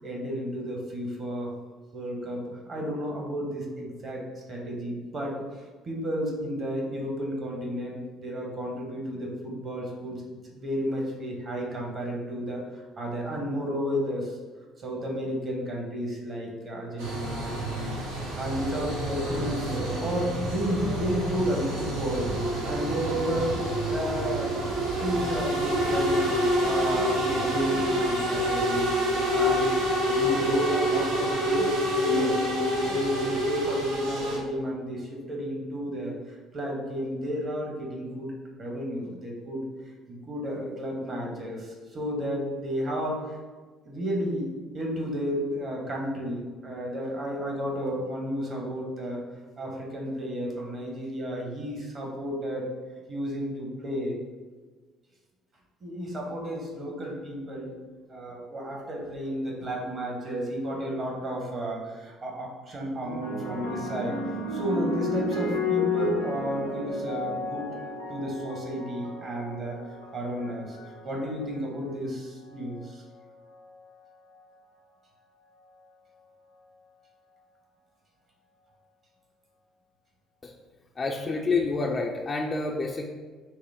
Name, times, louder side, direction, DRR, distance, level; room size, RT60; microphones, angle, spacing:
voice 1, 0.0-1.5 1.9-5.3 5.8-10.2 10.5-14.4 14.8-24.5 25.0-26.2 26.6-28.9 29.3-32.4 32.8-38.3 38.6-39.7 40.1-43.4 43.8-49.2 49.6-52.7 53.1-54.2 55.8-57.8 58.1-64.2 64.5-67.7 68.1-69.8 70.1-73.0, equal, 40° right, -1 dB, 1.2 m, -32 dB
sound 1, 17.0-34.4, equal, 70° right, 0.8 m, -27 dB
sound 2, 63.0-71.6 72.5-72.9, left 2 dB, 85° left, 0.6 m, -32 dB
voice 2, 81.0-83.0, left 3 dB, 30° left, 0 dB, 0.4 m, -28 dB
6.0 x 2.0 x 3.6 m, 1.4 s
figure-of-eight pair, 50°, 0 cm